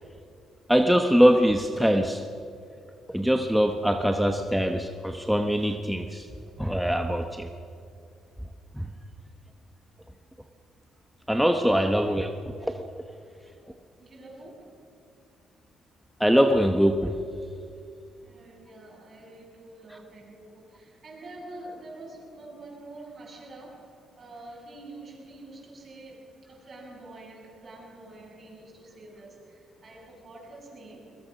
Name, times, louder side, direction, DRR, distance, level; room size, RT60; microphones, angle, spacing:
voice 1, 0.7-2.2 3.1-6.3 6.6-7.5 8.7-8.9 11.3-12.8 16.2-17.2, equal, ahead, 5 dB, 1.1 m, -23 dB
voice 2, 11.7-12.1 14.0-14.8 18.2-31.2, right 2 dB, 40° right, -4 dB, 7.8 m, -46 dB
22.0 x 20.5 x 6.4 m, 2.4 s
cardioid pair, 90°, 0 cm